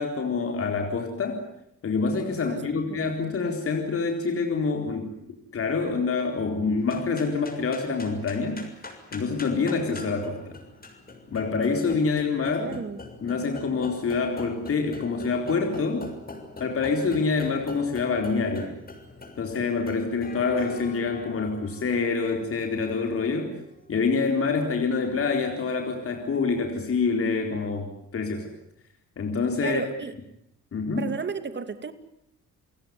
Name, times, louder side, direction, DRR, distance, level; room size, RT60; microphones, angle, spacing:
voice 1, 0.0-1.4 1.8-5.1 5.5-8.6 9.1-10.6 11.3-12.8 13.2-16.1 16.6-18.8 19.4-23.5 23.9-28.5 29.2-29.8 30.7-31.1, left 4 dB, 50° left, 3 dB, 4.2 m, -26 dB
sound 1, 6.8-26.3, left 2 dB, 30° left, 6.8 m, -44 dB
voice 2, 12.6-13.0 29.6-30.1 31.0-31.9, right 5 dB, 35° right, 10 dB, 2.7 m, -33 dB
29.5 x 17.0 x 9.7 m, 0.79 s
cardioid pair, 90°, 30 cm